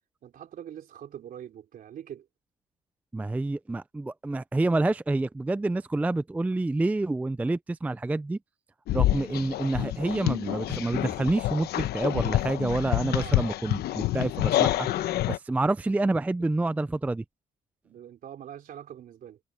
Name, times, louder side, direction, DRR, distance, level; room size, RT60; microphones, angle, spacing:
voice 1, 0.2-2.3 13.0-13.6 17.8-19.4, right 10 dB, 55° right, 3.7 m, -43 dB
voice 2, 3.1-8.4 8.9-14.9 15.3-17.2, right 2 dB, 10° right, 0.4 m, -28 dB
sound 1, 8.9-15.4, left 15 dB, 70° left, 0.9 m, -27 dB
cardioid pair, 110°, 17 cm